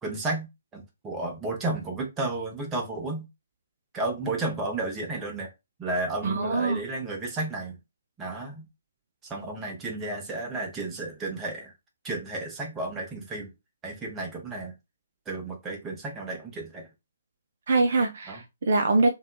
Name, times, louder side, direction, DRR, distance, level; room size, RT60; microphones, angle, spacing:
voice 1, 0.0-3.3 3.9-5.5 5.8-7.8 8.2-8.7 9.2-11.7 12.0-13.5 13.8-14.7 15.3-16.9 18.3-18.4, right 2 dB, 15° right, 0.7 m, -32 dB
voice 2, 6.2-6.8 17.7-19.1, right 3 dB, 55° right, 0.3 m, -23 dB
2.7 x 2.2 x 2.2 m
figure-of-eight pair, 130°, 0 cm